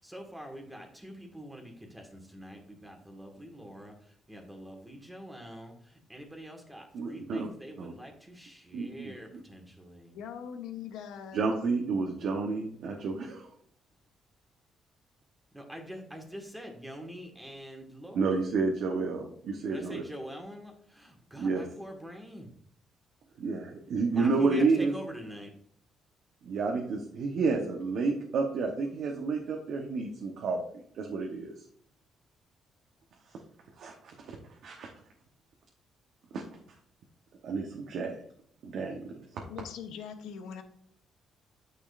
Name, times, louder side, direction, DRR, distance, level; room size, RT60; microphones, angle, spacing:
voice 1, 0.0-10.1 15.5-18.3 19.7-22.5 24.1-25.5, equal, 10° right, 2 dB, 1.9 m, -45 dB
voice 2, 6.9-7.5 7.8-7.9 8.7-9.4 11.3-13.5 18.1-20.0 21.4-21.6 23.4-24.9 26.4-30.6 30.9-31.5 33.8-34.4 34.6-34.9 36.3-36.4 37.4-38.2 38.6-39.4, right 4 dB, 70° right, 0 dB, 1.1 m, -30 dB
voice 3, 10.1-11.5 39.5-40.6, left 8 dB, 85° left, 7 dB, 0.9 m, -41 dB
9.1 x 6.2 x 2.6 m, 0.63 s
cardioid pair, 90°, 0 cm